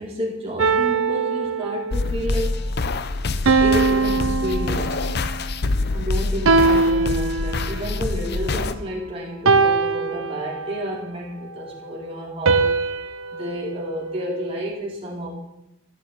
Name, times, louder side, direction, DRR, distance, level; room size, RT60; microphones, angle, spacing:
voice 1, 0.0-2.6 3.6-5.0 5.9-12.7 13.3-15.3, equal, 25° right, -4 dB, 4.5 m, -30 dB
sound 1, 0.6-2.1 3.5-5.3 6.5-7.9 9.5-10.9 12.5-14.7, right 4 dB, 70° right, 0.8 m, -21 dB
sound 2, 1.9-8.7, left 3 dB, 50° left, 0.7 m, -25 dB
13.5 x 6.9 x 9.2 m, 0.87 s
head